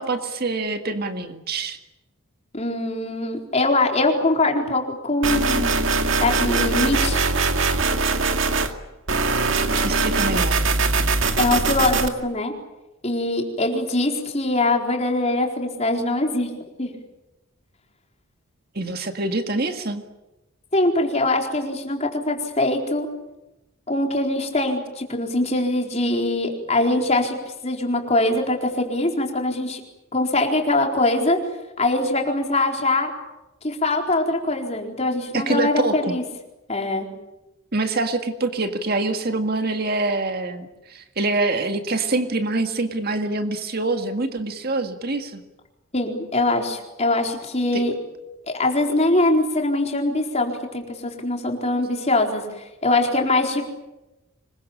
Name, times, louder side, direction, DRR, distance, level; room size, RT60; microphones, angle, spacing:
voice 1, 0.0-1.8 9.8-10.6 18.8-20.0 35.3-36.2 37.7-45.4 47.7-47.8, right 2 dB, 45° right, 6 dB, 1.9 m, -25 dB
voice 2, 2.5-5.8 6.2-7.2 11.4-12.5 13.0-16.5 16.8-16.9 20.7-23.1 23.9-27.4 27.6-29.8 30.1-31.4 31.8-33.1 33.6-36.2 36.7-37.1 45.9-47.9 48.6-52.4 52.8-53.7, left 2 dB, 30° left, 2 dB, 4.2 m, -22 dB
sound 1, 5.2-8.7 9.1-12.1, right 3 dB, 65° right, 2.1 m, -21 dB
26.0 x 22.0 x 8.8 m, 0.99 s
head